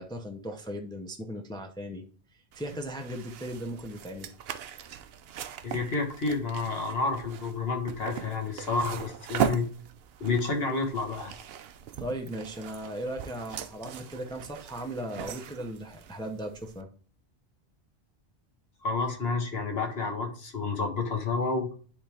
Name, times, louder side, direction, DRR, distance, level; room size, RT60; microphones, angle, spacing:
voice 1, 0.0-2.0 2.5-4.3 11.9-16.9, right 1 dB, 5° left, 3 dB, 0.6 m, -37 dB
sound 1, 2.5-16.8, right 9 dB, 70° right, 0.8 m, -39 dB
voice 2, 5.6-9.7 10.2-11.3 18.8-21.7, left 3 dB, 70° left, 3 dB, 1.6 m, -30 dB
10.0 x 3.5 x 3.4 m, 0.41 s
omnidirectional pair, 1.1 m